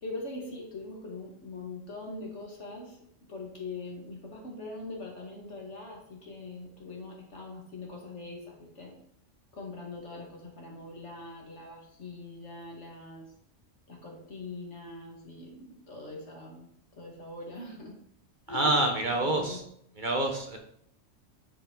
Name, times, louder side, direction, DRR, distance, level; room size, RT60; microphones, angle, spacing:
voice 1, 0.0-3.0 3.3-8.9 9.5-13.3 13.9-16.7 17.0-18.0 18.5-18.6 19.2-19.6, left 2 dB, 65° left, -1 dB, 2.3 m, -42 dB
voice 2, 18.5-19.6 20.0-20.6, right 1 dB, 40° right, 3 dB, 1.2 m, -27 dB
9.2 x 5.3 x 3.9 m, 0.70 s
omnidirectional pair, 1.3 m